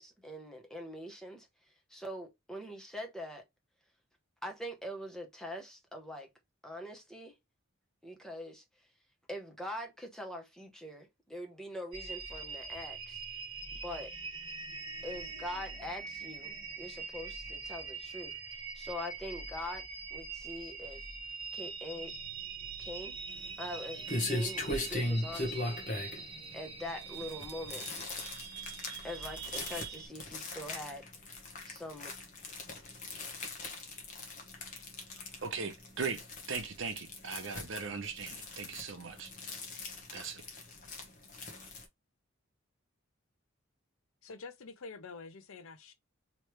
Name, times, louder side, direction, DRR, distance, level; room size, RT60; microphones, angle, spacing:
voice 1, 0.0-3.4 4.4-6.3 6.6-7.4 8.0-8.9 9.3-13.2 13.8-14.1 15.0-19.8 20.1-21.1 21.5-22.1 22.8-23.2 23.6-25.8 26.5-27.9 29.0-31.1 31.6-32.1, left 1 dB, 5° left, 0.9 m, -43 dB
sound 1, 11.9-30.1, right 5 dB, 25° right, 1.4 m, -43 dB
sound 2, 23.3-41.8, left 2 dB, 40° left, 1.1 m, -40 dB
voice 2, 35.4-36.2 36.5-39.3 40.1-40.4, right 5 dB, 65° right, 0.8 m, -38 dB
voice 3, 44.2-45.9, left 4 dB, 80° left, 0.7 m, -47 dB
3.2 x 3.1 x 3.1 m
head